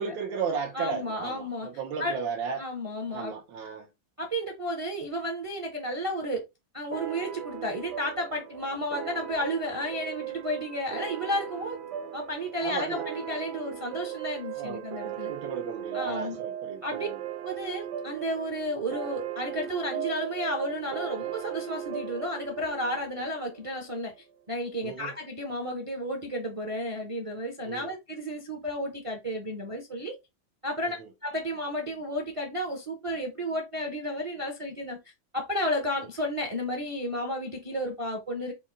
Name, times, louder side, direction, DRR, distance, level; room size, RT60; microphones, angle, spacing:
voice 1, 0.0-2.6 3.1-3.9 12.6-13.1 14.6-14.9 15.3-17.2 24.8-25.1 27.6-27.9 30.8-30.9, right 5 dB, 90° right, 1.5 m, -34 dB
voice 2, 0.7-1.7 2.0-2.2 2.6-3.3 4.2-6.5 6.7-11.8 12.1-15.3 15.9-16.4 16.8-17.1 17.4-24.1 24.5-30.1 30.6-31.0 31.2-35.0 35.3-38.5, equal, 40° right, 0.4 m, -32 dB
sound 1, 6.9-24.0, right 10 dB, 75° right, 1.1 m, -37 dB
5.1 x 2.2 x 3.6 m
omnidirectional pair, 2.0 m